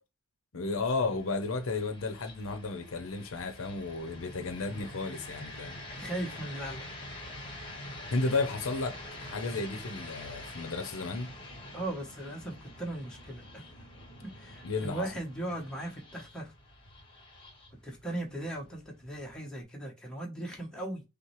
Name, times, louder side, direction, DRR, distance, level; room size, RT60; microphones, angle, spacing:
voice 1, 0.5-5.8 8.1-11.3 14.6-15.1, left 3 dB, 70° left, 0.7 m, -33 dB
sound 1, 0.7-19.6, left 1 dB, 25° left, 1.2 m, -46 dB
voice 2, 5.9-6.9 11.7-13.6 14.2-16.5 17.8-21.0, right 1 dB, 5° left, 1.0 m, -38 dB
5.6 x 2.1 x 3.1 m
head